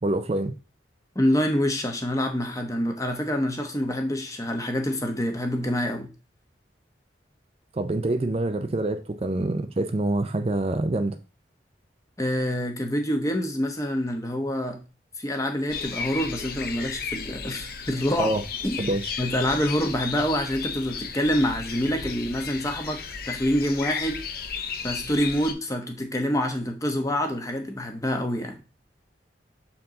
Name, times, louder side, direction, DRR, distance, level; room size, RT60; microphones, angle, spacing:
voice 1, 0.0-0.5 7.7-11.2 18.2-18.4 18.8-19.2, right 2 dB, 35° right, 8 dB, 0.4 m, -26 dB
voice 2, 1.1-6.1 12.2-14.8 15.2-18.3 18.6-18.8 19.2-23.0 23.3-24.2 24.8-28.6, equal, 20° left, 4 dB, 1.0 m, -26 dB
sound 1, 15.7-25.5, left 6 dB, 55° left, 0.7 m, -34 dB
6.8 x 4.6 x 3.8 m, 0.32 s
head